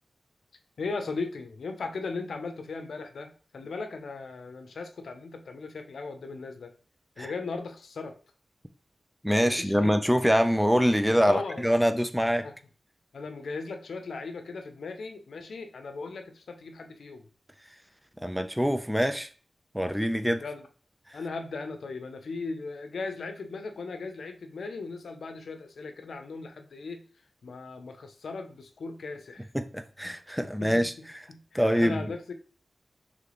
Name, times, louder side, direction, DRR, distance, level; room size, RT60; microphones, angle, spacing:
voice 1, 0.8-6.7 7.2-8.2 9.5-10.0 11.3-11.7 12.4-12.5 13.1-17.3 20.4-20.6 21.1-27.1 27.4-29.5 30.6-30.8 31.3-32.3, left 4 dB, 85° left, 0.6 m, -37 dB
voice 2, 9.2-12.4 18.2-19.3 19.7-20.4 29.5-30.9 31.5-32.0, equal, 5° right, 0.4 m, -24 dB
3.3 x 3.3 x 3.8 m
cardioid pair, 55°, 0 cm